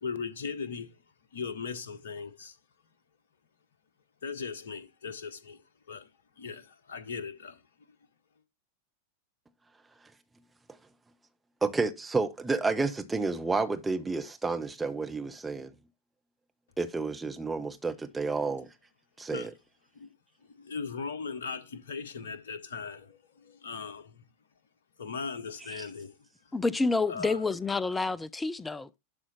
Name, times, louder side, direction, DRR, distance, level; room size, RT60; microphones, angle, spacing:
voice 1, 0.0-1.0 1.3-2.5 4.2-5.6 5.9-6.1 6.4-7.9 19.3-19.5 19.9-20.1 20.5-24.3 25.0-26.1 27.1-27.4, left 5 dB, 60° left, 1.2 m, -38 dB
voice 2, 11.6-15.7 16.8-18.7 19.2-19.5 25.8-25.9, right 3 dB, 10° right, 1.1 m, -30 dB
voice 3, 26.5-29.0, left 3 dB, 10° left, 0.6 m, -29 dB
12.0 x 4.4 x 4.2 m
figure-of-eight pair, 90°, 0 cm